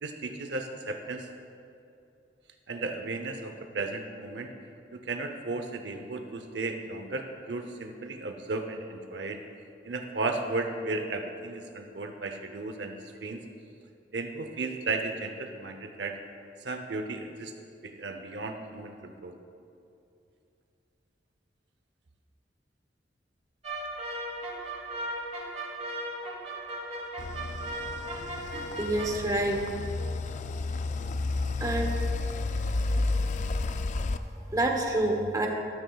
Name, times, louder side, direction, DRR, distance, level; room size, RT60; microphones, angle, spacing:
voice 1, 0.0-1.3 2.7-4.5 4.9-9.4 9.9-13.4 14.1-16.2 16.6-17.5 17.8-19.4, right 3 dB, 75° right, 5 dB, 0.7 m, -35 dB
sound 1, 23.6-29.1, right 1 dB, 35° right, 1.2 m, -37 dB
sound 2, 27.2-34.2, left 3 dB, 40° left, 0.3 m, -31 dB
voice 2, 28.5-29.6 31.6-31.9 34.5-35.5, right 1 dB, 20° right, 1 dB, 0.9 m, -27 dB
12.5 x 12.5 x 2.3 m, 2.7 s
head